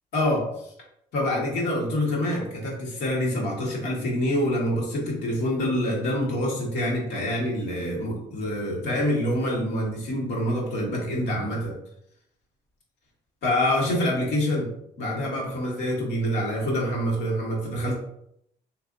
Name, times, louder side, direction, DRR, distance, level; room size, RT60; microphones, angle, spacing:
voice 1, 0.1-0.7 1.1-11.7 13.4-14.7 15.0-17.9, left 1 dB, 85° left, -2 dB, 1.5 m, -26 dB
3.5 x 2.7 x 3.7 m, 0.74 s
cardioid pair, 110°, 17 cm